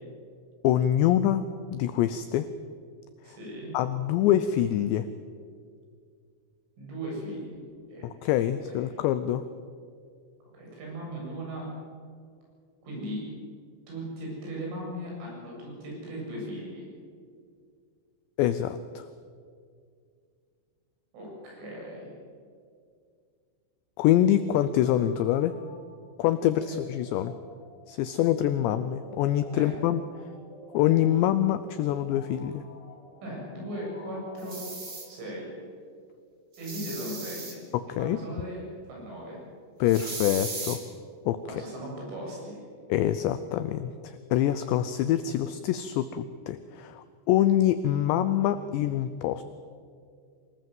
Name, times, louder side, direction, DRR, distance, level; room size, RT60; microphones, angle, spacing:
voice 1, 0.6-1.4 1.7-2.5 3.7-5.1 8.0-9.5 18.4-19.1 24.0-25.5 26.2-27.3 27.9-30.0 30.7-32.6 37.7-38.2 39.8-40.8 41.3-41.4 42.9-49.4, left 12 dB, 85° left, 12 dB, 2.5 m, -25 dB
voice 2, 3.2-3.7 6.8-7.6 7.9-8.1 8.7-9.0 10.5-11.7 12.8-13.3 13.9-16.9 21.1-22.1 29.5-29.7 33.2-34.6 35.1-35.5 36.6-37.5 37.9-38.6 38.9-39.4 41.4-42.6, right 1 dB, 70° right, -3 dB, 9.9 m, -38 dB
sound 1, 24.7-35.4, left 2 dB, 40° left, 5.6 m, -52 dB
sound 2, 34.4-35.1 36.5-37.5 39.9-40.8, right 3 dB, 30° right, 2.4 m, -37 dB
25.0 x 18.5 x 7.8 m, 2.2 s
omnidirectional pair, 5.9 m